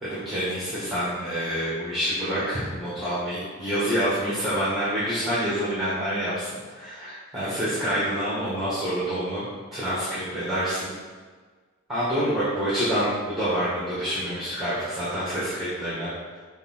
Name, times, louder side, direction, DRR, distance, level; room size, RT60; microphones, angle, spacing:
voice 1, 0.0-6.5 6.8-10.9 11.9-16.1, equal, ahead, -11 dB, 1.8 m, -27 dB
7.1 x 3.7 x 4.4 m, 1.5 s
head